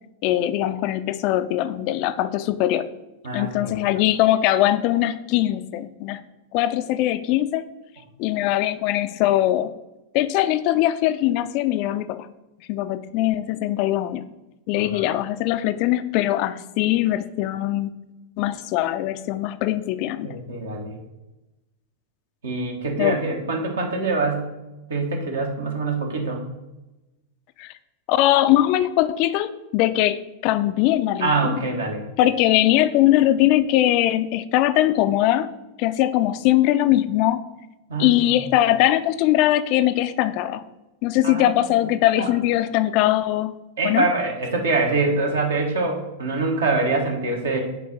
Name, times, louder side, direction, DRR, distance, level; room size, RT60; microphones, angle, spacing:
voice 1, 0.2-2.9 3.3-6.2 6.5-7.7 8.2-9.7 10.1-12.3 12.7-14.2 14.7-17.9 18.4-20.4 23.0-23.2 27.6-27.7 28.1-31.6 32.2-35.5 35.8-37.4 38.0-40.6 41.0-43.5 43.8-44.1, left 14 dB, 45° left, 12 dB, 0.3 m, -21 dB
voice 2, 3.2-3.7 14.9-15.0 20.2-20.9 22.4-24.5 24.9-26.4 31.2-32.0 37.9-38.4 41.2-41.5 42.2-42.3 43.8-47.6, right 3 dB, 65° right, 2 dB, 1.3 m, -24 dB
6.9 x 4.5 x 4.1 m, 1.0 s
figure-of-eight pair, 90°, 0 cm